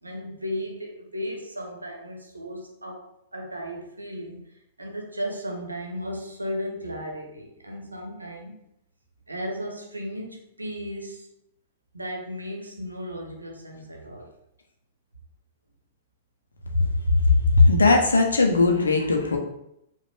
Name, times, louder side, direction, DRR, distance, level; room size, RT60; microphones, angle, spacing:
voice 1, 0.0-4.5 4.8-8.5 9.3-11.3 11.9-14.3, equal, 80° right, 1 dB, 0.9 m, -35 dB
voice 2, 17.5-19.4, left 3 dB, 70° left, 2 dB, 0.7 m, -18 dB
4.9 x 2.6 x 3.4 m, 0.79 s
figure-of-eight pair, 100°, 0 cm